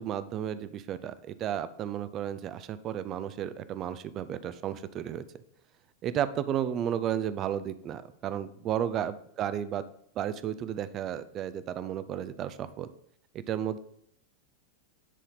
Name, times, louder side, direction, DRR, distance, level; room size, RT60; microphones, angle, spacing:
voice 1, 0.0-5.2 6.0-9.8 10.2-12.9 13.3-13.8, right 10 dB, 35° right, 14 dB, 0.4 m, -33 dB
9.9 x 4.2 x 3.9 m, 0.68 s
figure-of-eight pair, 90°, 0 cm